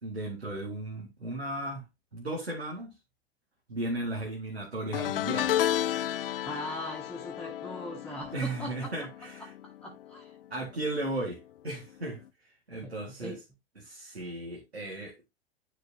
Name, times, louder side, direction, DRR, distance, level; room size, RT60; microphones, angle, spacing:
voice 1, 0.0-1.8 2.1-2.9 3.7-5.5 8.3-9.5 10.5-13.4 13.8-15.3, right 2 dB, 85° right, 2.0 m, -36 dB
sound 1, 4.9-10.3 10.6-11.0 12.2-12.3, left 12 dB, 65° left, 0.5 m, -32 dB
voice 2, 6.4-8.9 9.6-10.4 12.8-12.9 13.2-13.4, left 1 dB, 5° left, 1.2 m, -40 dB
10.0 x 4.9 x 2.8 m
figure-of-eight pair, 95°, 31 cm